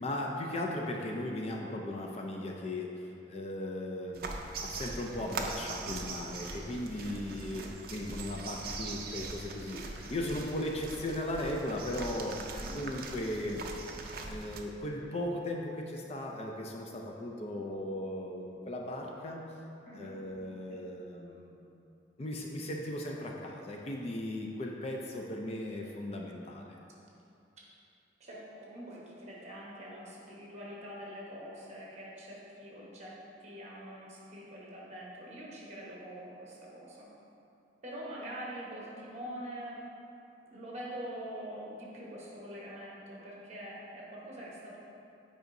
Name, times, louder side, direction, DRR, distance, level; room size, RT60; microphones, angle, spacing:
voice 1, 0.0-12.4 12.7-13.6 14.1-19.4 19.9-21.7 22.2-26.8, left 1 dB, 35° left, 0 dB, 0.4 m, -37 dB
sound 1, 4.1-14.6, right 3 dB, 55° right, 0.4 m, -41 dB
voice 2, 7.0-7.3 12.4-12.7 19.8-20.1 20.7-20.8 28.2-37.1 37.8-39.8 40.5-44.8, equal, 40° right, -5 dB, 1.1 m, -44 dB
7.8 x 5.0 x 2.6 m, 2.8 s
head